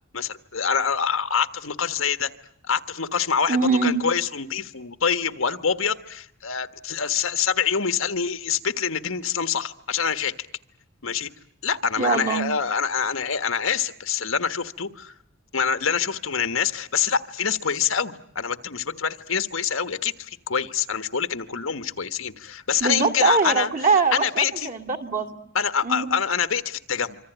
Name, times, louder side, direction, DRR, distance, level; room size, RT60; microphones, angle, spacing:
voice 1, 0.1-2.3 2.7-10.3 11.0-11.3 11.6-15.1 15.5-23.7 24.1-24.7 25.5-27.2, left 6 dB, 85° left, 10 dB, 1.4 m, -25 dB
voice 2, 3.5-4.0 12.0-12.5 22.8-25.4 25.8-26.0, right 4 dB, 45° right, 5 dB, 2.6 m, -22 dB
26.0 x 25.0 x 9.1 m, 0.67 s
head